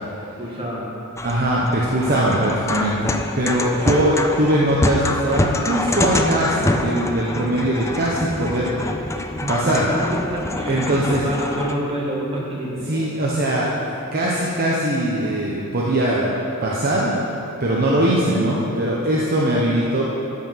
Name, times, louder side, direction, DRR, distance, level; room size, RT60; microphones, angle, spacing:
voice 1, 0.4-0.9 9.4-13.1, equal, 25° right, -4 dB, 1.9 m, -28 dB
sound 1, 1.2-11.7, left 2 dB, 15° left, 0.4 m, -25 dB
voice 2, 1.2-8.7 9.5-9.8 10.7-11.2 12.9-16.3 16.6-17.1 17.6-20.0, right 1 dB, 45° right, -5 dB, 1.0 m, -21 dB
12.5 x 5.7 x 5.7 m, 2.9 s
head